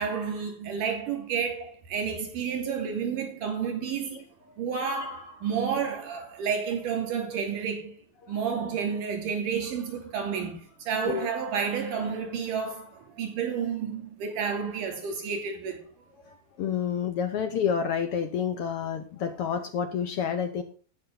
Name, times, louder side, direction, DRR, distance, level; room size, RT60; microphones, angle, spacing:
voice 1, 0.0-4.2 4.6-7.9 8.3-15.8, right 6 dB, 75° right, 4.3 m, -30 dB
voice 2, 16.2-20.6, left 7 dB, 75° left, 1.3 m, -29 dB
17.5 x 5.8 x 3.8 m
omnidirectional pair, 3.8 m